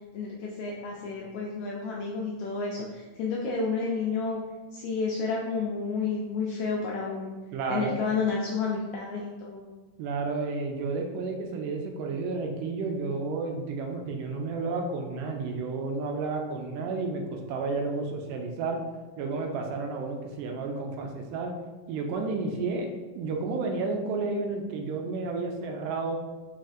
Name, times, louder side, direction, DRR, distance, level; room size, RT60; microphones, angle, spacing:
voice 1, 0.1-4.4 4.7-7.3 7.7-9.7, left 4 dB, 85° left, -2 dB, 1.6 m, -30 dB
voice 2, 7.5-8.0 10.0-18.8 19.2-21.5 21.9-22.9 23.2-26.2, right 3 dB, 85° right, 3 dB, 2.2 m, -31 dB
4.7 x 4.3 x 2.4 m, 1.3 s
omnidirectional pair, 3.7 m